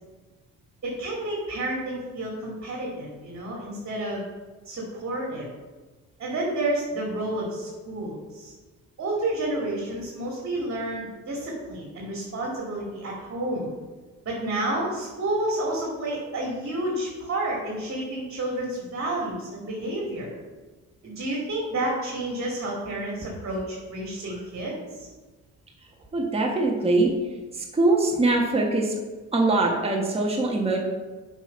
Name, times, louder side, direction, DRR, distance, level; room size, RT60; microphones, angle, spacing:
voice 1, 0.8-4.2 4.6-5.5 6.2-8.5 9.0-13.7 14.2-20.3 21.0-25.1, right 1 dB, 50° right, -3 dB, 2.3 m, -30 dB
voice 2, 26.1-27.1 27.5-29.0 29.3-30.8, right 2 dB, 20° right, -1 dB, 1.3 m, -22 dB
7.4 x 5.3 x 5.4 m, 1.3 s
cardioid pair, 90°, 30 cm